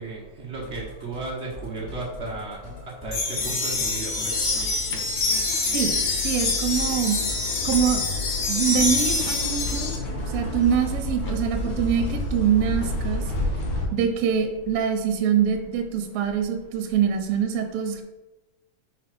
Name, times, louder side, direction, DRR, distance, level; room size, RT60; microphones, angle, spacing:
voice 1, 0.0-2.6 3.0-3.2 3.4-4.6, right 3 dB, 50° right, -3 dB, 0.8 m, -34 dB
Musical instrument, 0.5-12.5, left 2 dB, 30° left, 2.4 m, -39 dB
sound 1, 3.1-10.0, left 3 dB, 90° left, 3.3 m, -26 dB
sound 2, 3.7-13.9, left 1 dB, 55° left, 1.9 m, -32 dB
voice 2, 5.7-7.2 7.6-8.0 8.5-9.9 10.3-13.2 13.9-18.0, right 8 dB, 70° right, 6 dB, 2.0 m, -24 dB
5.6 x 4.8 x 6.1 m, 1.0 s
omnidirectional pair, 3.4 m